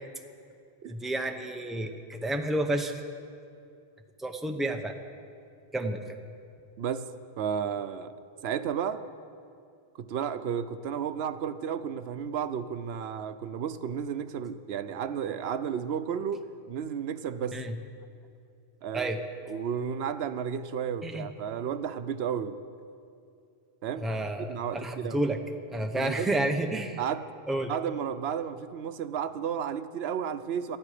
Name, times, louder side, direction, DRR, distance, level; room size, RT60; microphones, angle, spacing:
voice 1, 0.9-2.9 4.2-4.9 5.7-6.0 17.5-17.7 18.9-19.2 21.0-21.3 24.0-25.4 25.7-27.0 27.5-27.7, right 1 dB, ahead, 4 dB, 0.7 m, -30 dB
voice 2, 6.8-8.1 8.4-9.0 9.9-17.7 18.8-19.1 19.5-22.6 23.8-24.1 24.4-25.2 25.9-26.3 27.0-27.3 27.7-30.8, right 8 dB, 90° right, 12 dB, 0.9 m, -33 dB
19.0 x 12.5 x 4.9 m, 2.4 s
omnidirectional pair, 1.0 m